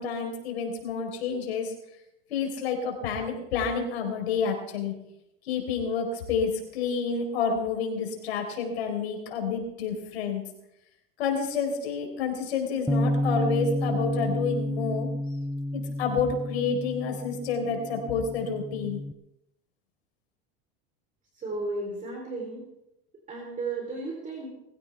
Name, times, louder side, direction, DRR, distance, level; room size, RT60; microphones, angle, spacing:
voice 1, 0.0-1.7 2.3-4.9 5.4-10.4 11.2-15.1 15.7-19.0, left 5 dB, 90° left, 3 dB, 4.2 m, -29 dB
Bass guitar, 12.9-19.1, left 1 dB, ahead, 0.5 m, -30 dB
voice 2, 21.3-22.7 23.3-24.5, right 3 dB, 25° right, 0 dB, 3.9 m, -34 dB
21.5 x 15.5 x 3.5 m, 0.86 s
supercardioid pair, 125°, 31 cm